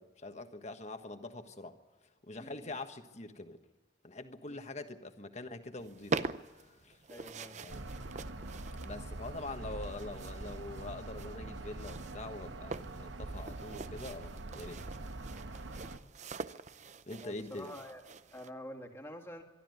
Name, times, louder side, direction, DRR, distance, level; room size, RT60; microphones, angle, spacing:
voice 1, 0.0-1.8 2.2-3.6 4.0-7.0 7.5-7.8 8.8-14.8 17.1-17.7, left 2 dB, 35° left, 7 dB, 1.4 m, -44 dB
voice 2, 2.4-2.7 7.1-7.6 17.2-18.0 18.3-19.4, equal, 15° left, 2 dB, 2.1 m, -47 dB
sound 1, 5.8-18.5, right 4 dB, 40° right, 0.6 m, -44 dB
sound 2, 7.7-16.0, right 2 dB, 85° right, 1.3 m, -44 dB
24.0 x 12.5 x 9.4 m, 1.3 s
head